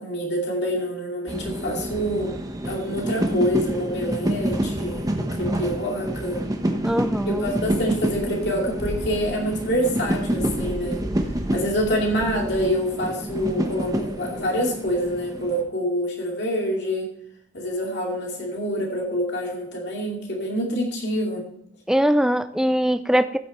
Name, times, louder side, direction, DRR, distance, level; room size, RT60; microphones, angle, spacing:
voice 1, 0.0-2.3 2.6-6.4 7.3-11.0 11.5-17.1 17.5-21.4, equal, 60° left, -1 dB, 2.5 m, -26 dB
sound 1, 1.3-15.6, right 1 dB, 20° right, 1.0 m, -28 dB
voice 2, 6.8-7.5 21.9-23.4, equal, 5° right, 11 dB, 0.4 m, -21 dB
14.5 x 7.8 x 3.1 m, 0.73 s
head